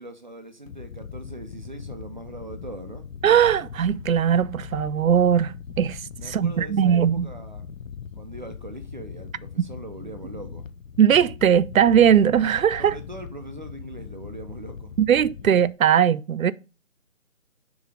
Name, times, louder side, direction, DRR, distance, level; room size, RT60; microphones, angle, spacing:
voice 1, 0.0-3.1 6.2-7.6 8.2-10.7 12.8-15.0, right 2 dB, 35° right, 0.7 m, -41 dB
sound 1, 0.7-15.7, left 6 dB, 70° left, 0.6 m, -40 dB
voice 2, 3.2-6.0 6.3-7.3 11.0-12.9 15.0-16.5, right 8 dB, 80° right, 0.5 m, -19 dB
7.0 x 3.1 x 4.9 m
figure-of-eight pair, 175°, 41 cm